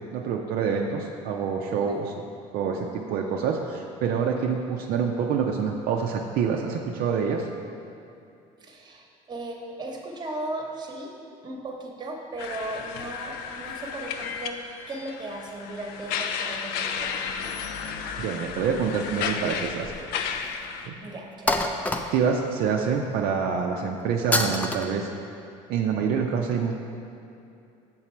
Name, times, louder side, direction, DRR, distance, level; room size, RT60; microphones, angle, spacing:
voice 1, 0.0-2.1 2.5-7.5 18.2-19.9 20.9-21.0 22.1-25.1 25.7-26.7, right 6 dB, 65° right, 1 dB, 0.4 m, -26 dB
voice 2, 8.6-11.1 11.4-17.2 21.0-21.6, right 2 dB, 25° right, 1 dB, 0.9 m, -37 dB
sound 1, 12.4-20.9, left 6 dB, 75° left, 0.4 m, -33 dB
sound 2, 19.2-20.1 20.4-20.5 21.5-22.5 24.3-24.9, left 2 dB, 10° left, 0.3 m, -26 dB
6.0 x 3.9 x 4.4 m, 2.6 s
supercardioid pair, 95°, 16 cm